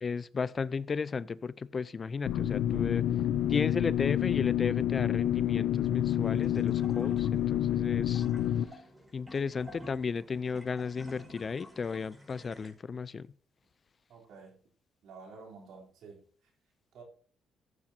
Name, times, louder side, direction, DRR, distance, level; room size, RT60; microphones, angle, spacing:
voice 1, 0.0-3.1 3.5-8.3 8.7-8.8 9.1-13.3, left 5 dB, 40° left, 0.4 m, -34 dB
sound 1, 2.3-8.6, left 11 dB, 85° left, 0.6 m, -28 dB
sound 2, 5.7-12.7, left 1 dB, 15° right, 5.2 m, -51 dB
voice 2, 14.1-14.6 15.0-16.3 16.9-17.0, right 4 dB, 80° right, 3.5 m, -50 dB
15.0 x 8.6 x 2.8 m
cardioid pair, 90°, 0 cm